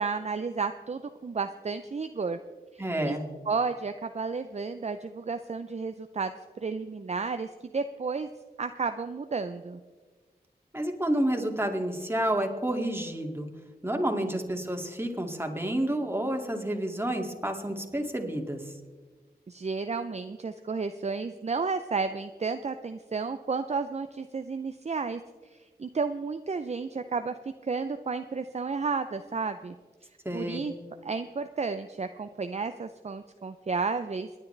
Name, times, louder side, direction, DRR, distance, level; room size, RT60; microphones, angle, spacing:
voice 1, 0.0-2.4 2.7-3.2 3.5-8.3 8.6-9.8 14.1-14.2 19.5-25.2 25.5-27.3 27.6-29.7 30.3-30.7 31.0-34.4, right 4 dB, 40° right, 9 dB, 0.6 m, -32 dB
voice 2, 2.8-3.2 10.7-13.5 13.8-18.7 30.2-30.6, right 1 dB, 15° right, 2 dB, 2.3 m, -29 dB
26.5 x 9.6 x 3.3 m, 1.4 s
cardioid pair, 40°, 17 cm